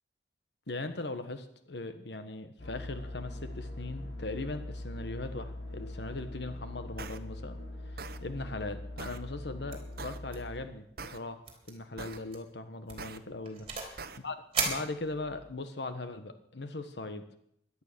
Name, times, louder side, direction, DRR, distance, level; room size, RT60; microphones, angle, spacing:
voice 1, 0.7-7.6 7.8-14.0 14.2-14.4 14.6-17.2, left 2 dB, 70° left, 9 dB, 1.3 m, -39 dB
sound 1, 2.6-10.6, left 1 dB, 85° left, 3.2 m, -42 dB
sound 2, 7.0-7.2 8.0-8.2 9.0-9.2 10.0-10.2 11.0-11.2 12.0-12.2 13.0-13.2 14.0-14.2, right 4 dB, 55° right, 1.0 m, -42 dB
sound 3, 9.7-10.0 10.3-10.6 10.8-10.9 11.5-11.7 12.1-12.4 12.9-14.0 14.5-15.5, right 4 dB, 30° right, 3.7 m, -36 dB
17.0 x 11.5 x 6.8 m, 0.73 s
head